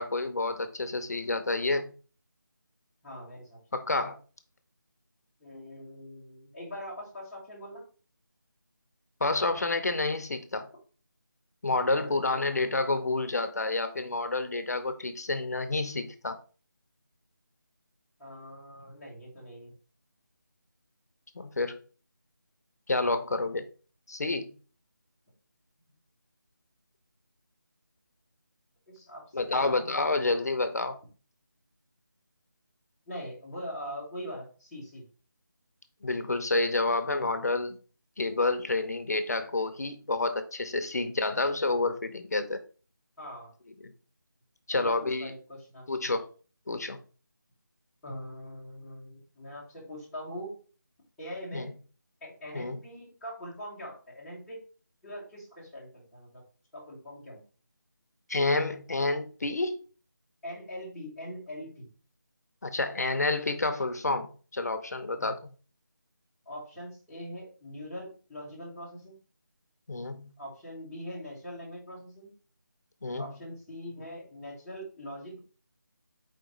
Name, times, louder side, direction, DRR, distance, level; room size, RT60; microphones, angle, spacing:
voice 1, 0.0-1.9 3.7-4.2 9.2-10.7 11.6-16.4 21.4-21.8 22.9-23.6 24.1-24.5 29.3-31.0 36.0-37.8 38.2-42.6 43.8-43.9 44.7-45.3 45.9-46.3 46.7-47.0 51.5-51.7 52.5-52.8 58.3-59.8 62.6-65.5 69.9-70.4 73.0-73.3, left 2 dB, 50° left, 0.6 m, -29 dB
voice 2, 3.0-3.6 5.4-7.8 12.0-12.4 18.2-19.7 28.9-30.1 33.1-35.0 43.2-43.5 44.7-45.8 48.0-50.5 51.2-51.7 52.2-54.6 55.0-56.4 56.7-57.4 60.4-61.9 65.2-65.3 66.5-69.2 70.4-72.3 73.2-75.4, equal, ahead, 0.6 m, -42 dB
4.4 x 3.0 x 3.8 m
figure-of-eight pair, 170°, 11 cm